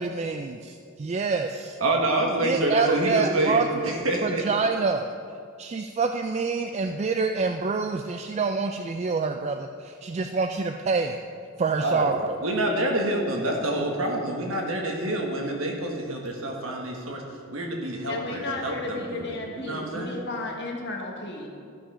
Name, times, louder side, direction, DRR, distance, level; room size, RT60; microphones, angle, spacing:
voice 1, 0.0-1.8 2.4-3.9 4.2-5.1 5.6-11.2 11.6-12.4, right 4 dB, 30° right, 6 dB, 0.3 m, -26 dB
voice 2, 1.8-4.4 11.8-12.1 12.4-17.2 17.5-20.2, right 1 dB, 70° right, 1 dB, 1.6 m, -27 dB
voice 3, 18.0-21.5, left 2 dB, 55° left, 1 dB, 1.5 m, -33 dB
13.5 x 5.7 x 5.6 m, 2.3 s
head